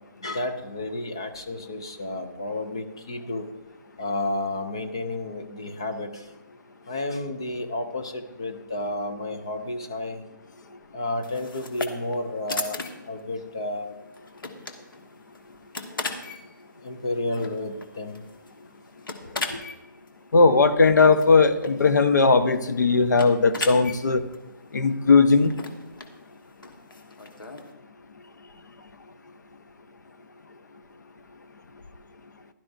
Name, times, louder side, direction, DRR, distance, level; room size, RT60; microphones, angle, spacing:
voice 1, 0.2-3.5 4.0-6.2 6.9-10.2 10.9-12.8 13.1-14.0 16.8-18.2 19.5-19.6, left 2 dB, 15° left, 6 dB, 0.3 m, -31 dB
sound 1, 11.2-27.7, left 3 dB, 85° left, 1.4 m, -38 dB
voice 2, 20.3-24.2 24.7-25.5, left 4 dB, 60° left, 10 dB, 0.8 m, -18 dB
15.5 x 11.5 x 2.6 m, 1.0 s
hypercardioid pair, 175°, 11 cm